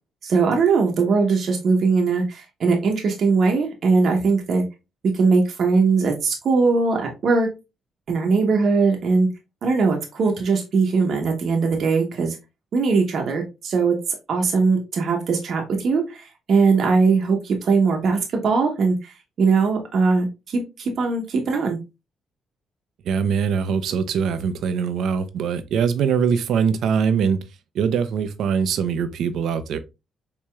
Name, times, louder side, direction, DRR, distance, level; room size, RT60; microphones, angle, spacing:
voice 1, 0.2-4.6 5.1-7.5 8.1-9.3 9.6-12.4 12.7-14.0 14.3-21.8, right 4 dB, 60° right, 0.8 m, -20 dB
voice 2, 23.0-27.4 27.7-29.8, right 6 dB, 75° right, 0.5 m, -22 dB
4.6 x 2.9 x 2.2 m
cardioid pair, 90°, 0 cm